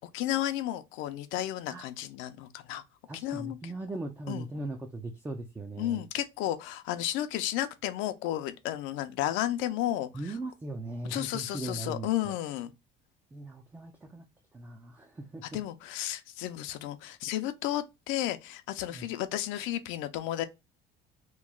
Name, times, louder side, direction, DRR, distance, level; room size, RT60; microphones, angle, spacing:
voice 1, 0.1-2.8 3.2-3.6 4.3-4.5 5.8-10.1 11.1-12.7 15.5-20.4, left 13 dB, 80° left, 0.5 m, -33 dB
voice 2, 3.1-6.0 10.1-12.3 13.3-14.2 14.5-15.4 18.9-19.1, right 2 dB, 10° right, 0.3 m, -39 dB
3.0 x 2.3 x 3.6 m
cardioid pair, 140°, 20 cm